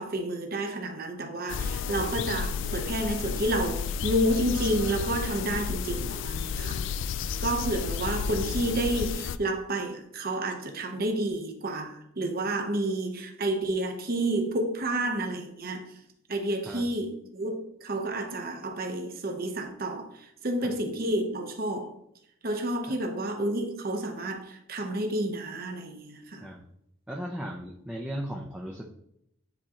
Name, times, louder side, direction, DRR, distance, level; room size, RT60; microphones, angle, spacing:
voice 1, 0.0-6.8 7.4-15.9 16.3-21.9 22.4-26.5, right 1 dB, 45° right, 0.9 m, -30 dB
sound 1, 1.5-9.4, left 6 dB, 60° left, 0.3 m, -32 dB
voice 2, 27.1-28.8, equal, 5° right, 0.5 m, -36 dB
9.9 x 3.7 x 2.9 m
head